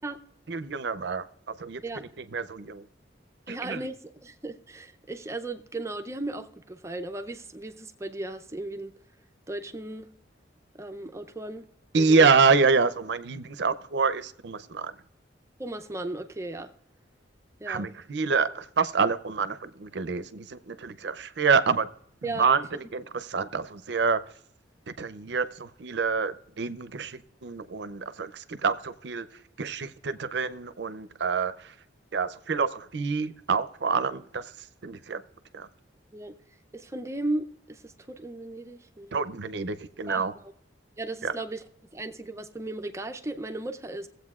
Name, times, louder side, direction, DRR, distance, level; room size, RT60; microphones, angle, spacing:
voice 1, 0.5-1.2 1.6-2.8 3.5-3.8 11.9-14.9 17.7-21.9 22.4-24.2 24.9-29.3 29.6-31.5 32.1-34.4 34.8-35.2 35.5-35.7 39.1-40.3 41.2-41.3, right 5 dB, 60° right, 0.5 m, -27 dB
voice 2, 3.5-8.9 9.5-10.1 10.7-11.6 12.0-12.3 15.6-16.7 17.6-18.0 22.2-22.5 36.1-36.3 36.7-39.2 40.1-40.5 41.0-41.6 41.9-44.1, right 2 dB, 15° right, 0.5 m, -36 dB
16.5 x 8.0 x 2.4 m
head